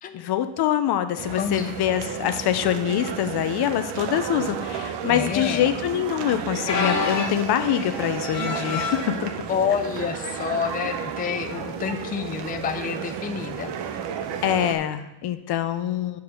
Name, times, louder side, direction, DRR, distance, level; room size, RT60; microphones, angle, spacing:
voice 1, 0.1-9.3 14.4-16.2, left 11 dB, 65° left, 10 dB, 0.6 m, -24 dB
sound 1, 1.2-14.8, right 8 dB, 75° right, 0.8 m, -32 dB
voice 2, 1.4-1.7 5.1-5.7 9.5-13.7, left 7 dB, 20° left, 6 dB, 0.4 m, -28 dB
sound 2, 6.7-9.1 9.9-10.1 10.5-10.6 11.5-11.7 13.3-13.4, left 5 dB, 40° left, 1.0 m, -29 dB
7.0 x 4.7 x 6.1 m, 0.93 s
cardioid pair, 135°, 42 cm